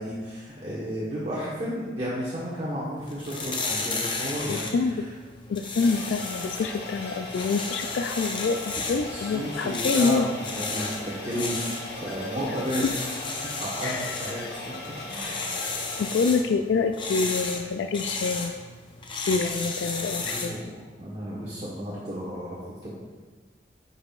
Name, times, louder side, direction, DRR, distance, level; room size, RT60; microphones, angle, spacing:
voice 1, 0.0-5.1 9.1-12.8 13.4-14.4 14.9-15.7 20.2-22.6 22.8-22.9, equal, 35° right, -8 dB, 1.1 m, -33 dB
sound 1, 3.0-20.6, left 3 dB, 25° left, 0.6 m, -34 dB
voice 2, 4.5-5.0 5.5-10.3 12.8-12.9 13.8-14.2 16.0-18.5 19.2-20.6, left 4 dB, 85° left, 6 dB, 0.3 m, -26 dB
sound 2, 5.8-16.2, left 2 dB, 65° left, 1.0 m, -38 dB
9.6 x 5.5 x 2.4 m, 1.4 s
head